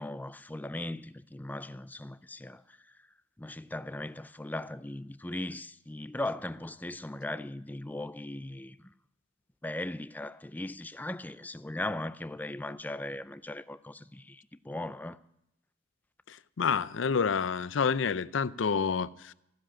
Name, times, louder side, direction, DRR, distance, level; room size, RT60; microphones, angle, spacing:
voice 1, 0.0-2.6 3.4-8.9 9.6-15.2, left 1 dB, 10° left, 0.5 m, -38 dB
voice 2, 16.3-19.3, left 6 dB, 75° left, 0.5 m, -29 dB
15.0 x 7.7 x 9.9 m
head